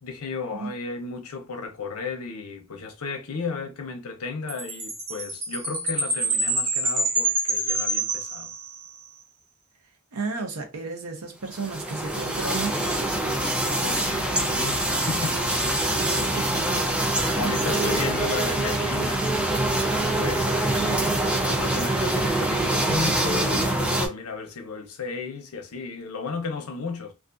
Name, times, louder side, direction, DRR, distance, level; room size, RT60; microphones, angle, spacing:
voice 1, 0.0-8.5 13.8-15.7 17.4-19.2 20.0-27.1, left 4 dB, 80° left, 0.7 m, -34 dB
Chime, 4.5-9.0, right 2 dB, 40° right, 1.0 m, -27 dB
voice 2, 10.1-13.0 16.0-16.9 17.2-18.0 20.7-21.2, right 4 dB, 85° right, 0.8 m, -34 dB
sound 1, 11.5-24.1, right 1 dB, 5° right, 0.4 m, -24 dB
2.4 x 2.4 x 2.4 m
head